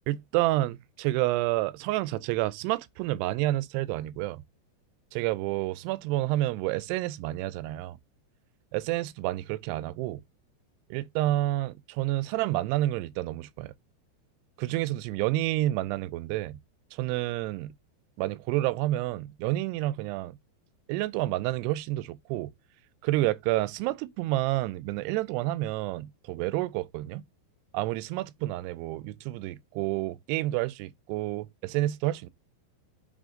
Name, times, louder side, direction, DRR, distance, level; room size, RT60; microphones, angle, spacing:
voice 1, 0.1-4.4 5.1-8.0 8.7-10.2 10.9-13.7 14.6-16.6 17.0-17.7 18.2-20.3 20.9-22.5 23.0-27.2 27.7-32.3, right 16 dB, 85° right, 2.5 m, -29 dB
7.5 x 3.9 x 3.7 m
omnidirectional pair, 5.0 m